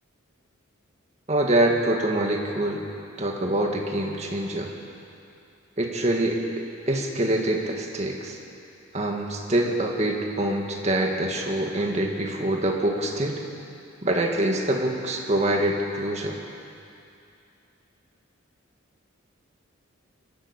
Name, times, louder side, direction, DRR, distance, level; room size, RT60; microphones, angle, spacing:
voice 1, 1.3-2.9 3.2-4.7 5.8-6.4 6.9-8.4 8.9-13.4 14.0-16.4, right 1 dB, 30° right, 1 dB, 2.0 m, -25 dB
23.0 x 12.5 x 8.9 m, 2.6 s
head